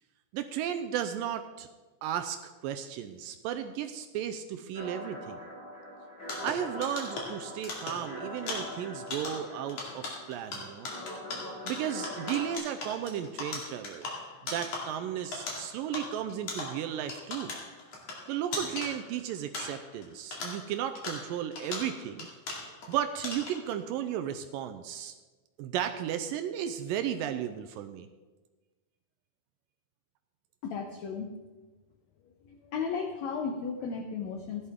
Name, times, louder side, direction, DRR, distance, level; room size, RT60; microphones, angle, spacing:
voice 1, 0.3-1.7 2.0-5.4 6.4-10.9 11.7-14.1 14.4-17.5 18.3-22.3 22.9-25.1 25.6-28.1, right 10 dB, 80° right, 8 dB, 2.1 m, -34 dB
sound 1, 4.7-12.6, equal, 25° left, 4.5 m, -43 dB
sound 2, 6.2-20.0 20.3-22.9 23.2-23.7, left 3 dB, 50° left, 3.0 m, -39 dB
voice 2, 30.6-31.3 32.5-34.7, left 5 dB, 85° left, 4 dB, 1.5 m, -35 dB
15.5 x 11.5 x 3.6 m, 1.3 s
omnidirectional pair, 4.3 m